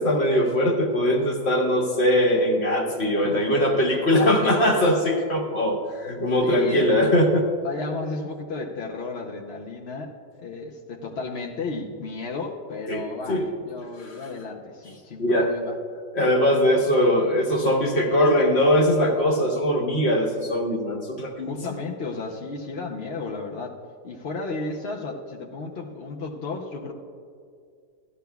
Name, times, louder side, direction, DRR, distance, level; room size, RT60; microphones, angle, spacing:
voice 1, 0.0-7.5 12.9-13.5 14.0-14.1 15.2-15.5 16.1-21.5, equal, 40° left, 0 dB, 1.4 m, -21 dB
voice 2, 6.4-6.9 7.6-10.1 10.4-15.7 21.4-23.7 24.0-26.9, left 3 dB, 55° left, -1 dB, 0.7 m, -33 dB
16.5 x 12.5 x 2.3 m, 2.3 s
omnidirectional pair, 2.0 m